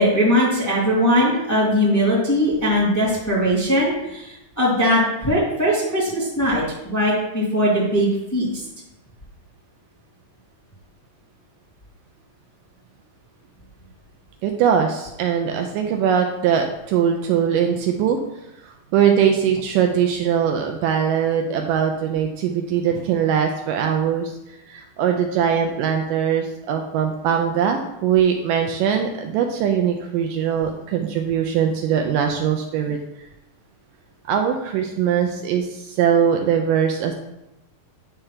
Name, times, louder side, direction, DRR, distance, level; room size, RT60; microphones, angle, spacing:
voice 1, 0.0-8.5, equal, 5° left, -7 dB, 1.7 m, -20 dB
voice 2, 14.4-18.2 18.6-24.3 24.7-33.0 34.3-37.1, right 8 dB, 80° right, 4 dB, 2.1 m, -21 dB
9.9 x 3.4 x 5.7 m, 0.89 s
omnidirectional pair, 4.1 m